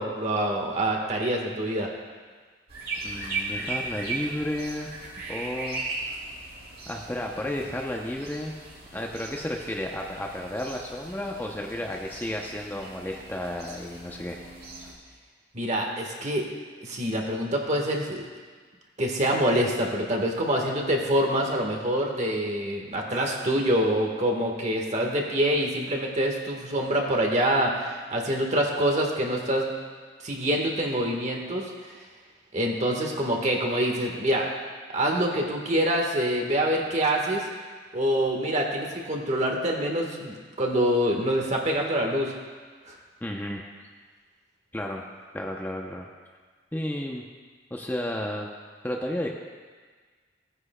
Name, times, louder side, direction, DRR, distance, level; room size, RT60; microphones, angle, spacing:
voice 1, 0.0-1.9 15.5-16.4 16.8-18.3 19.0-29.8 30.2-31.6 32.5-34.5 34.9-37.4 37.9-42.3 42.9-43.0, right 1 dB, 40° right, 0 dB, 1.4 m, -26 dB
sound 1, 2.7-14.9, right 3 dB, 60° right, 3.1 m, -38 dB
voice 2, 3.0-4.9 5.3-6.2 6.9-8.5 8.9-14.4 43.2-43.6 44.7-45.0 45.3-46.1 46.7-47.2 47.7-48.5 48.8-49.3, left 1 dB, 10° left, 0 dB, 0.6 m, -32 dB
17.0 x 9.7 x 2.2 m, 1.5 s
head